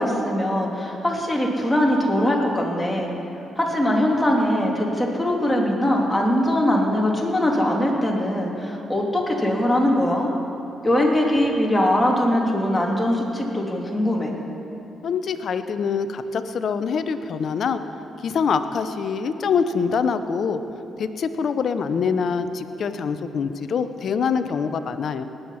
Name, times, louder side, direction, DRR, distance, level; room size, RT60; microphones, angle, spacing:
voice 1, 0.0-3.1 3.6-10.3 10.8-14.3, left 1 dB, 10° left, -2 dB, 3.0 m, -21 dB
voice 2, 15.0-17.8 18.2-20.6 21.0-25.2, left 6 dB, 65° left, 10 dB, 0.7 m, -24 dB
19.0 x 8.0 x 5.8 m, 2.9 s
supercardioid pair, 50°, 0 cm